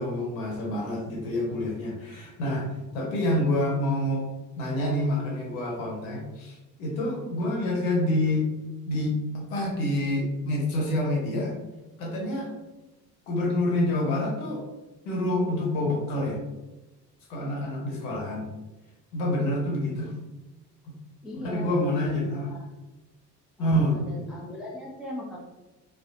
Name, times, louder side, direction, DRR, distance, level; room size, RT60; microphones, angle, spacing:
voice 1, 0.0-2.7 2.9-4.2 4.6-8.5 8.9-11.6 12.0-12.5 13.3-14.7 15.0-16.4 17.3-18.5 19.1-20.1 20.9-21.0 21.4-22.5 23.6-24.0, left 1 dB, 60° left, -1 dB, 0.9 m, -27 dB
voice 2, 21.2-22.6 23.6-25.4, left 2 dB, ahead, -3 dB, 0.4 m, -38 dB
3.1 x 2.3 x 2.7 m, 1.1 s
figure-of-eight pair, 50°, 49 cm